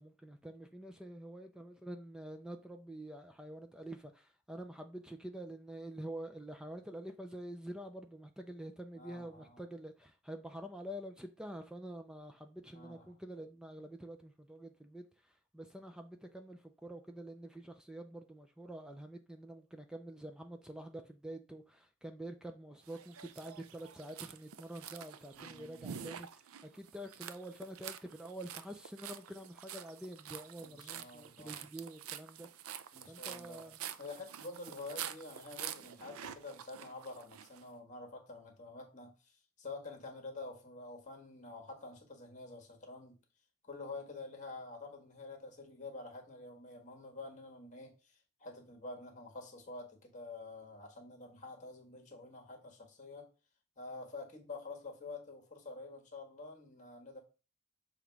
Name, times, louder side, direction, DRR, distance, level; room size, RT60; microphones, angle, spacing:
voice 1, 0.0-15.0 15.5-32.5 33.1-33.8, right 1 dB, 5° right, 0.3 m, -47 dB
voice 2, 8.9-9.6 12.7-13.2 25.3-25.9 30.6-31.7 32.9-33.7 34.0-43.2 43.6-53.3 53.8-57.2, left 3 dB, 35° left, 1.5 m, -48 dB
sound 1, 22.9-37.6, right 9 dB, 70° right, 0.5 m, -48 dB
7.1 x 3.0 x 4.6 m
head